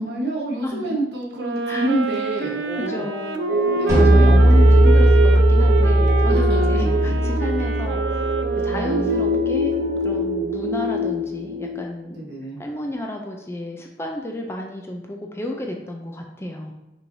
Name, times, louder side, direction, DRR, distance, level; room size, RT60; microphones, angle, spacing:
voice 1, 0.0-3.1 3.7-4.7 6.3-7.2 8.6-9.1 12.1-12.6, right 1 dB, 70° right, -2 dB, 1.2 m, -28 dB
Wind instrument woodwind instrument, 1.3-9.7, right 4 dB, 85° right, 0.4 m, -28 dB
voice 2, 2.8-3.6 3.9-8.2 8.6-9.8 10.0-12.2 12.6-16.7, left 1 dB, 15° left, 1 dB, 0.4 m, -31 dB
sound 1, 3.5-11.8, right 1 dB, 45° right, 0.7 m, -25 dB
sound 2, 3.9-9.3, equal, 20° right, 1.4 m, -17 dB
5.6 x 3.2 x 2.7 m, 0.96 s
head